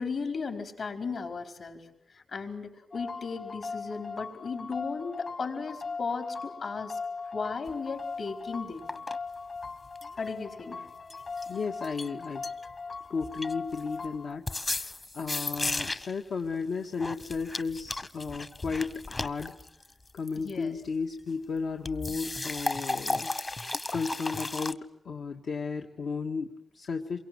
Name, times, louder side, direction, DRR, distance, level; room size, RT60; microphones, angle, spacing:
voice 1, 0.0-1.8 2.1-7.0 7.3-8.9 10.2-10.8 20.3-20.8, left 4 dB, 65° left, 5 dB, 4.8 m, -36 dB
sound 1, 2.9-14.4, left 4 dB, 50° left, 1.9 m, -39 dB
sound 2, 7.7-7.8 8.9-9.2 9.6-10.3 11.1-11.5 11.8-12.1 12.4-12.9 13.2-14.1 14.5-16.2 17.0-20.5 21.9-24.7, left 2 dB, 30° left, 1.0 m, -34 dB
voice 2, 11.5-12.4 13.1-19.6 20.1-23.3 23.9-27.2, left 5 dB, 85° left, 2 dB, 1.7 m, -34 dB
28.0 x 23.5 x 7.9 m, 0.76 s
wide cardioid pair, 140°, 0 cm